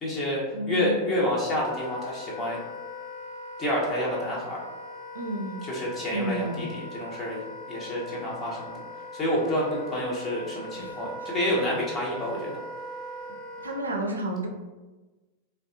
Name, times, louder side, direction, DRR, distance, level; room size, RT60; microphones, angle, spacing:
voice 1, 0.0-2.6 3.6-4.6 5.7-8.8 9.1-12.5, left 1 dB, 20° left, -5 dB, 0.8 m, -29 dB
voice 2, 0.5-1.2 5.1-5.7 6.1-6.8 10.8-11.3 13.6-14.5, right 1 dB, 75° right, 3 dB, 0.4 m, -32 dB
Wind instrument woodwind instrument, 1.5-13.8, left 1 dB, 20° right, 0.5 m, -40 dB
3.3 x 2.2 x 2.6 m, 1.2 s
figure-of-eight pair, 90°, 0 cm